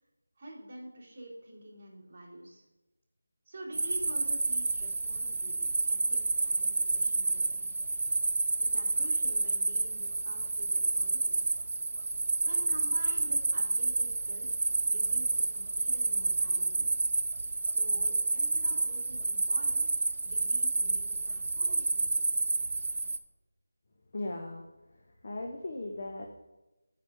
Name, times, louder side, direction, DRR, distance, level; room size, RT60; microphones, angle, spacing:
voice 1, 0.4-2.6 3.4-7.7 8.6-11.5 12.4-16.8 17.6-22.4, right 1 dB, 25° right, -8 dB, 3.2 m, -48 dB
sound 1, 3.7-23.2, right 3 dB, 50° right, 0.5 m, -29 dB
voice 2, 24.1-24.6 25.2-26.4, left 2 dB, 45° left, 2 dB, 0.8 m, -37 dB
7.0 x 5.1 x 6.3 m, 1.0 s
figure-of-eight pair, 170°, 0 cm